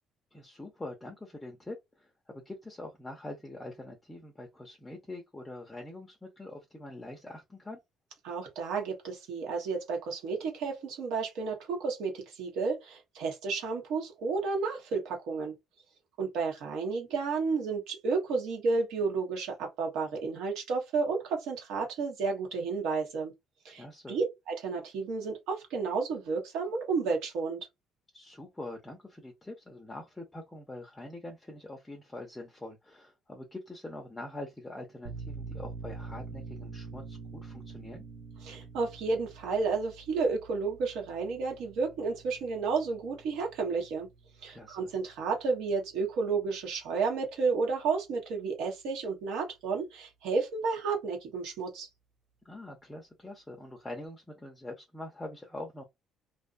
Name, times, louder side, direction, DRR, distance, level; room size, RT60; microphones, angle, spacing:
voice 1, 0.3-2.1 2.5-7.8 23.7-24.2 28.1-38.0 44.5-44.9 52.4-55.8, left 2 dB, 10° left, 0.6 m, -44 dB
voice 2, 8.2-15.5 16.2-23.3 23.6-27.7 38.4-44.1 44.4-51.9, right 4 dB, 90° right, 1.1 m, -32 dB
sound 1, 35.0-46.3, right 4 dB, 55° right, 0.5 m, -46 dB
2.5 x 2.2 x 2.5 m
cardioid pair, 130°, 0 cm